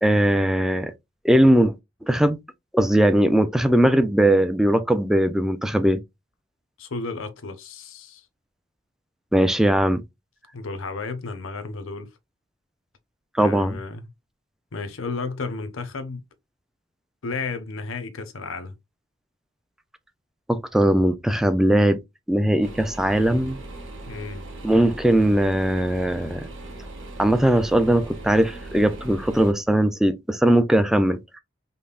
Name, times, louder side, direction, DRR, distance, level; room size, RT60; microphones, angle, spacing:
voice 1, 0.0-0.9 1.2-1.7 2.1-2.4 2.7-6.0 9.3-10.0 13.4-13.8 20.5-22.0 22.3-23.6 24.6-26.5 27.2-31.2, right 1 dB, ahead, 0.3 m, -19 dB
voice 2, 6.8-8.2 10.5-12.1 13.4-14.1 14.7-16.2 17.2-18.8 24.1-24.4, left 4 dB, 75° left, 0.7 m, -33 dB
sound 1, 22.6-29.5, right 2 dB, 65° right, 1.1 m, -39 dB
5.2 x 2.1 x 2.3 m
head